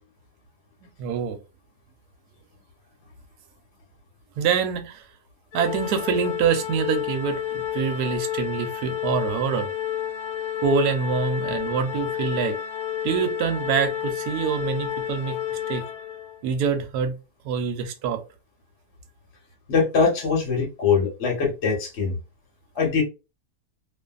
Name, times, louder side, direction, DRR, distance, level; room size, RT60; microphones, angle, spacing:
voice 1, 1.0-1.4 4.4-5.0 5.5-9.7 10.6-12.5 13.0-15.4 15.7-15.8 16.4-17.1 17.4-18.2, right 6 dB, 75° right, 7 dB, 1.1 m, -25 dB
Organ, 5.5-16.4, left 10 dB, 85° left, 1.2 m, -30 dB
voice 2, 19.7-22.1 22.7-23.0, left 5 dB, 45° left, -2 dB, 1.2 m, -22 dB
2.6 x 2.5 x 2.3 m, 0.29 s
omnidirectional pair, 1.7 m